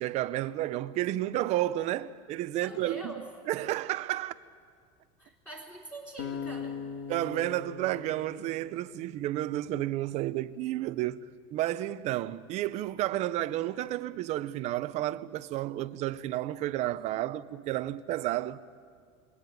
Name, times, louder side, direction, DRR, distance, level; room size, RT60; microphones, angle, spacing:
voice 1, 0.0-3.1 3.5-4.3 7.1-11.2 11.5-18.6, right 14 dB, 40° right, 0.6 m, -31 dB
voice 2, 2.5-3.3 5.2-6.8, right 2 dB, 10° left, 3.5 m, -43 dB
sound 1, 6.2-9.4, left 6 dB, 55° left, 1.7 m, -40 dB
28.5 x 22.0 x 9.3 m
supercardioid pair, 150°, 17 cm